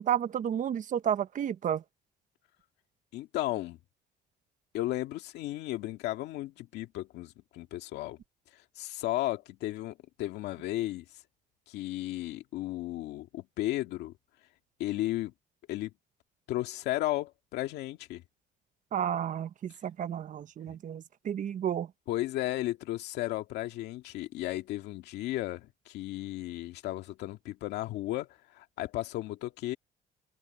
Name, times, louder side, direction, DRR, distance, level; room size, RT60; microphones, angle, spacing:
voice 1, 0.0-1.8 18.9-21.9, right 9 dB, 50° right, 1.2 m, -31 dB
voice 2, 3.1-3.8 4.7-8.2 8.8-11.0 11.7-14.1 14.8-15.3 15.7-15.9 16.5-18.2 20.7-20.8 22.1-29.8, left 16 dB, 85° left, 2.0 m, -34 dB
cardioid pair, 110°, 17 cm